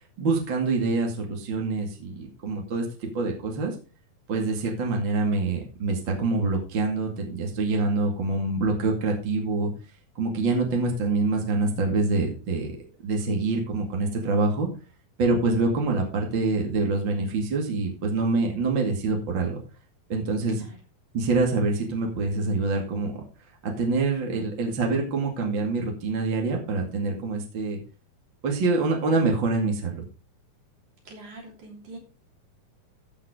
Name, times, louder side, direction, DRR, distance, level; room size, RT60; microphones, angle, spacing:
voice 1, 0.2-3.7 4.3-9.7 10.2-12.7 13.0-14.7 15.2-19.6 20.1-20.7 21.1-23.2 23.6-27.8 28.4-30.0, right 3 dB, 35° right, 1 dB, 2.4 m, -25 dB
voice 2, 31.1-32.0, right 2 dB, 55° right, 0 dB, 4.5 m, -44 dB
14.5 x 5.8 x 4.9 m, 0.34 s
omnidirectional pair, 4.4 m